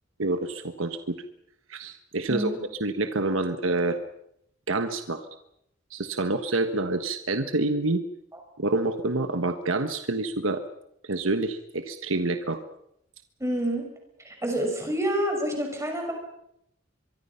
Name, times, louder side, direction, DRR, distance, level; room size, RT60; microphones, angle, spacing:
voice 1, 0.2-1.2 1.7-2.5 2.8-4.0 4.7-5.3 5.9-8.0 8.6-10.6 11.0-12.6, right 2 dB, 75° right, 8 dB, 1.4 m, -27 dB
voice 2, 13.4-13.9 14.2-16.1, equal, 15° right, 2 dB, 6.2 m, -27 dB
24.0 x 24.0 x 5.8 m, 0.76 s
head